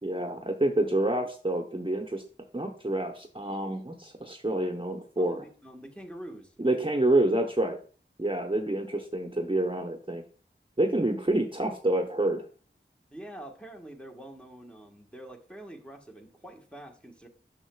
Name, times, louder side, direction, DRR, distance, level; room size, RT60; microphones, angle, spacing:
voice 1, 0.0-2.2 2.5-5.4 6.6-7.8 8.2-10.2 10.8-12.5, right 1 dB, 25° right, 2 dB, 0.9 m, -28 dB
voice 2, 5.2-6.5 13.1-17.3, right 1 dB, 5° left, 1 dB, 1.4 m, -45 dB
9.8 x 6.5 x 2.3 m, 0.40 s
wide cardioid pair, 40°, 20 cm